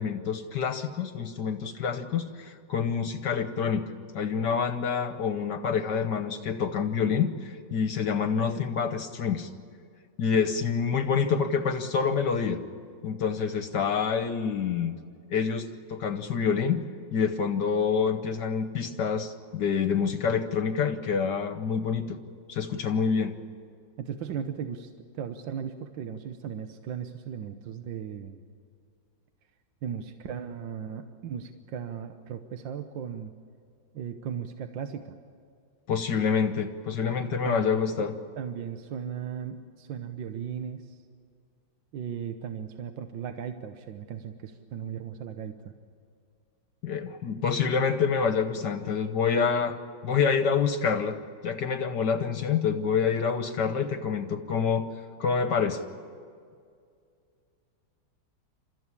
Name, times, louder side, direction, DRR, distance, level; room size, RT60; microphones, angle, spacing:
voice 1, 0.0-3.8 4.1-9.5 10.2-12.6 13.0-15.0 15.3-16.8 17.1-22.2 22.5-23.3 35.9-38.1 46.8-49.8 50.0-51.2 51.4-54.9 55.2-55.8, left 6 dB, 65° left, 8 dB, 1.6 m, -27 dB
voice 2, 24.0-28.4 29.8-33.3 33.9-35.2 37.3-38.1 38.4-41.0 41.9-45.7, right 8 dB, 75° right, 7 dB, 1.7 m, -37 dB
29.5 x 14.0 x 9.9 m, 2.3 s
omnidirectional pair, 2.1 m